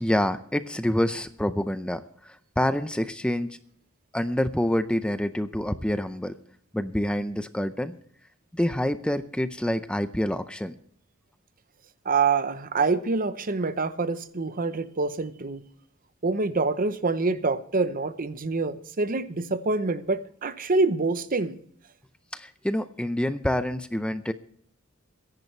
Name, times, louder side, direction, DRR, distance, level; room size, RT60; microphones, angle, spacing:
voice 1, 0.0-3.6 4.1-6.3 6.7-7.9 8.5-10.8 22.3-24.3, left 1 dB, 5° left, 0.5 m, -27 dB
voice 2, 12.0-15.6 16.2-21.6, right 3 dB, 40° right, 0.8 m, -26 dB
23.0 x 11.0 x 3.3 m
head